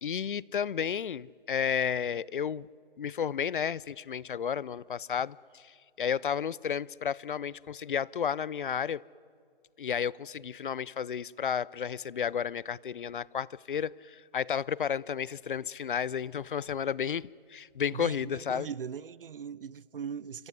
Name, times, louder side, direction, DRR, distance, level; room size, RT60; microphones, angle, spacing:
voice 1, 0.0-2.7 3.0-9.0 9.8-18.7, left 8 dB, 60° left, 0.5 m, -32 dB
voice 2, 17.9-20.5, right 7 dB, 70° right, 0.6 m, -40 dB
27.0 x 15.0 x 9.7 m
figure-of-eight pair, 155°, 29 cm